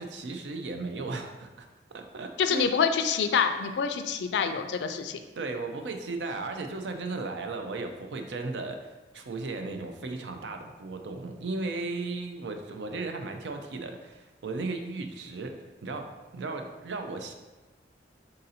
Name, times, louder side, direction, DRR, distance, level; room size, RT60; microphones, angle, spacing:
voice 1, 0.0-1.7 1.9-2.7 3.6-3.7 4.5-4.8 5.4-8.9 9.1-15.5 15.8-16.1 16.3-17.3, right 3 dB, 75° right, 5 dB, 0.5 m, -35 dB
voice 2, 2.4-5.2, left 6 dB, 70° left, 8 dB, 0.3 m, -26 dB
3.8 x 2.7 x 4.1 m, 1.2 s
head